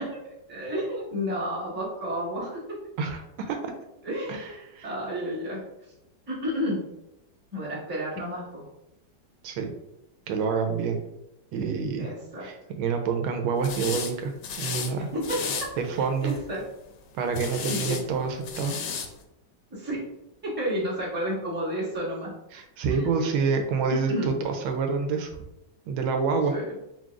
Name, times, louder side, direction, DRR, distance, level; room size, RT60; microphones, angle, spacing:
voice 1, 0.0-2.6 4.0-5.6 6.3-6.8 7.5-8.7 12.0-12.5 15.1-15.7 16.0-16.6 17.7-18.0 19.7-20.0 20.4-22.3 22.9-23.2 23.9-24.3 26.5-26.8, equal, 10° right, -7 dB, 0.8 m, -31 dB
voice 2, 3.0-3.7 4.3-4.4 4.7-4.9 9.4-9.7 10.3-11.0 11.5-12.0 12.4-15.1 15.8-16.3 17.1-18.7 22.5-25.3 25.9-26.5, right 5 dB, 90° right, 5 dB, 1.4 m, -27 dB
sound 1, 13.6-14.1 14.4-14.9 15.2-15.7 16.2-16.6 17.3-18.0 18.4-19.1, left 6 dB, 75° left, 1.2 m, -33 dB
5.8 x 2.2 x 2.4 m, 0.87 s
omnidirectional pair, 2.2 m